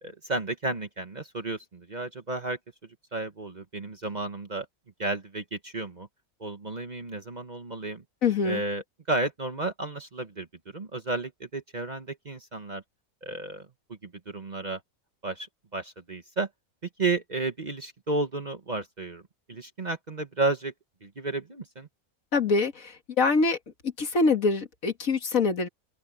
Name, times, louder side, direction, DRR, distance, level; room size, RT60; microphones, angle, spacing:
voice 1, 0.0-2.6 3.1-4.7 5.0-6.1 6.4-8.0 8.4-10.5 10.7-12.8 13.2-14.8 15.2-15.5 15.7-16.5 17.0-19.2 19.5-20.7 21.0-21.9, right 3 dB, 30° right, 1.2 m, -32 dB
voice 2, 8.2-8.6 22.3-23.6 24.0-25.7, left 4 dB, 65° left, 2.2 m, -24 dB
omnidirectional pair, 1.6 m